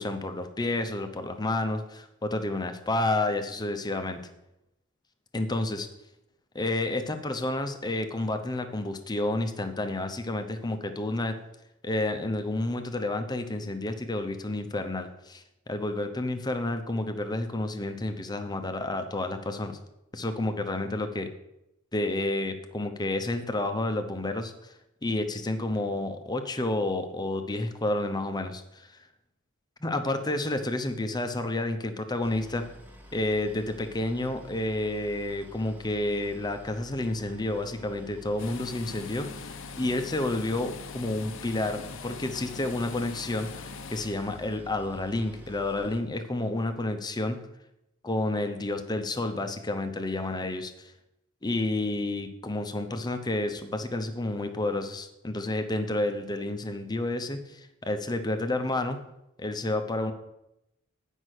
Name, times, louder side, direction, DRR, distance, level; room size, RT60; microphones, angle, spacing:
voice 1, 0.0-4.2 5.3-5.9 6.5-11.3 11.8-19.8 20.1-21.3 21.9-24.8 25.0-28.9 29.8-32.6 33.1-47.4 48.0-50.9 51.4-59.0 59.4-60.1, left 2 dB, 20° left, 7 dB, 0.7 m, -30 dB
Boat Water vehicle, 32.2-46.0, equal, 10° right, 1.0 m, -50 dB
sound 1, 38.4-44.6, left 5 dB, 65° left, 0.6 m, -42 dB
9.4 x 5.4 x 6.4 m, 0.88 s
head